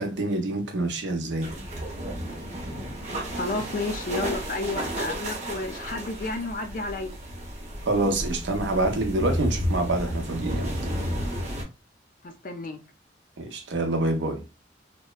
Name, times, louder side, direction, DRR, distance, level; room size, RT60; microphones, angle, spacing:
voice 1, 0.0-1.5 7.8-10.8 13.4-14.4, right 2 dB, 80° right, 0.6 m, -26 dB
sound 1, 1.4-11.6, equal, 40° right, 0.7 m, -32 dB
voice 2, 3.4-7.1 12.2-12.8, left 2 dB, 45° left, 0.4 m, -31 dB
2.9 x 2.0 x 2.2 m
head